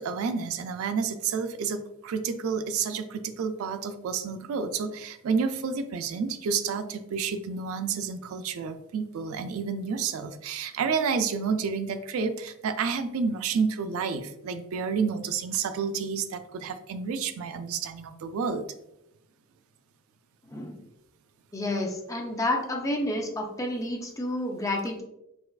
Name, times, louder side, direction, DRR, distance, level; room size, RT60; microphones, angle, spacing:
voice 1, 0.0-18.6, right 5 dB, 85° right, 10 dB, 0.3 m, -30 dB
voice 2, 20.4-20.7 21.5-25.0, left 1 dB, 15° left, 2 dB, 0.4 m, -30 dB
4.2 x 2.4 x 2.3 m, 0.85 s
head